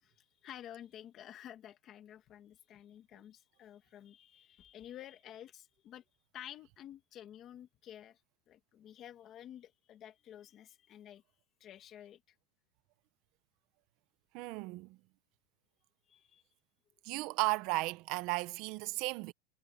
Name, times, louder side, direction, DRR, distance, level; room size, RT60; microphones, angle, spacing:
voice 1, 0.0-6.0 6.3-8.2 8.5-11.2 11.6-12.2 16.1-16.4, left 11 dB, 25° left, 1.7 m, -51 dB
voice 2, 14.3-15.0 17.0-19.3, right 22 dB, 40° right, 0.7 m, -35 dB
supercardioid pair, 170°, 0 cm